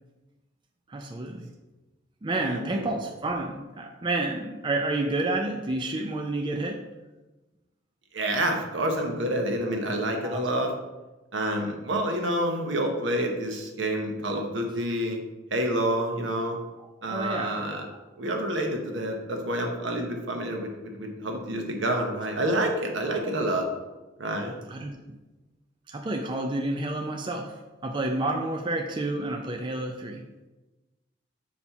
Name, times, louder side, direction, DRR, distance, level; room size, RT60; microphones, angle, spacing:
voice 1, 0.9-1.5 2.2-6.8 10.2-10.5 16.8-17.6 24.7-25.2 25.9-30.2, right 2 dB, 25° right, 3 dB, 0.4 m, -30 dB
voice 2, 2.3-2.9 8.1-10.7 11.3-15.2 15.5-16.6 17.0-17.9 18.2-23.7 24.2-24.6, right 1 dB, 75° right, 3 dB, 1.0 m, -28 dB
4.3 x 4.2 x 5.7 m, 1.1 s
head